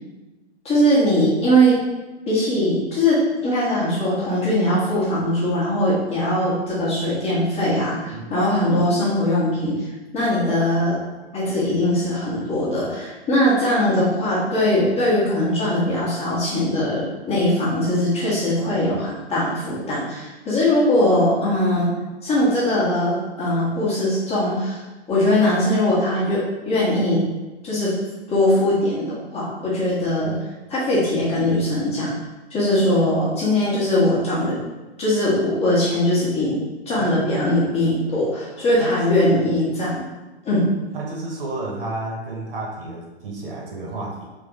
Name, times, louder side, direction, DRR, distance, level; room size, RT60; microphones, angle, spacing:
voice 1, 0.6-1.7 2.3-9.8 10.1-10.9 11.3-21.9 22.2-24.8 25.1-26.4 26.6-27.2 27.6-27.9 28.3-30.4 30.7-32.1 32.5-34.5 35.0-36.6 36.9-40.0 40.4-40.7, left 1 dB, 20° left, -7 dB, 1.4 m, -20 dB
voice 2, 38.8-39.6 40.9-44.3, right 2 dB, 55° right, -2 dB, 1.5 m, -31 dB
3.8 x 3.4 x 3.8 m, 1.1 s
figure-of-eight pair, 120°, 34 cm